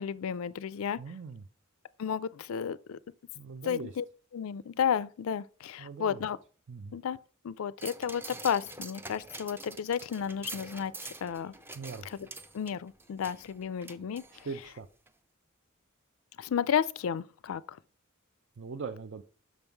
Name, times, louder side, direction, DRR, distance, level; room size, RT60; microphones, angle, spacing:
voice 1, 0.0-1.0 2.0-3.0 3.6-4.0 4.3-6.4 6.9-7.2 7.4-10.9 11.2-11.5 12.1-12.3 12.5-14.2 16.4-17.8, left 7 dB, 75° left, 0.4 m, -32 dB
voice 2, 1.0-1.4 3.3-3.9 5.8-6.2 6.7-7.0 11.7-12.1 14.4-14.9 18.6-19.2, right 4 dB, 60° right, 0.5 m, -40 dB
sound 1, 7.8-14.7 15.1-15.2, right 2 dB, 10° right, 0.5 m, -46 dB
6.2 x 5.4 x 4.5 m
head